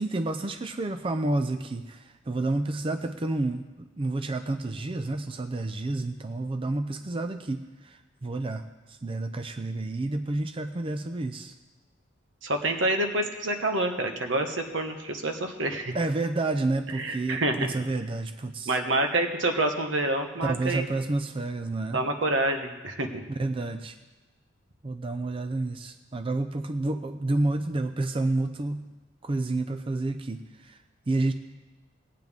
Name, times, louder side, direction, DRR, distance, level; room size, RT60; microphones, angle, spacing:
voice 1, 0.0-8.6 8.9-11.5 15.9-18.8 20.4-22.0 23.4-24.0 24.8-28.9 29.2-30.8 31.1-31.3, right 2 dB, 30° right, 8 dB, 0.5 m, -30 dB
voice 2, 12.4-15.9 16.9-17.7 18.6-20.9 21.9-23.2, right 2 dB, 80° right, 5 dB, 1.3 m, -27 dB
18.5 x 9.2 x 3.6 m, 1.2 s
head